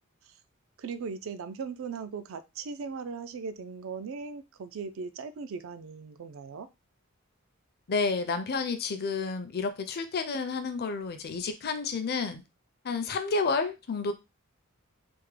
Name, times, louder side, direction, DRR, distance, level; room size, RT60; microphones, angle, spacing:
voice 1, 0.8-6.7, right 5 dB, 70° right, 0.4 m, -38 dB
voice 2, 7.9-12.4 12.8-14.1, left 4 dB, 50° left, 0.5 m, -30 dB
3.5 x 2.1 x 3.2 m
head